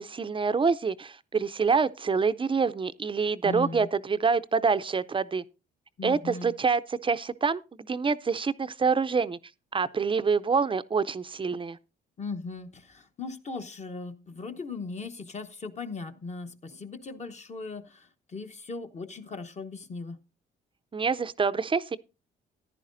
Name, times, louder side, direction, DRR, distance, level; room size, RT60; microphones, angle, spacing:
voice 1, 0.0-5.4 6.0-7.6 7.9-9.4 9.7-11.8 20.9-22.0, right 5 dB, 25° right, 0.5 m, -26 dB
voice 2, 3.4-3.9 6.0-6.5 12.2-20.2, left 4 dB, 35° left, 0.9 m, -38 dB
14.5 x 10.5 x 2.6 m
cardioid pair, 90°, 20 cm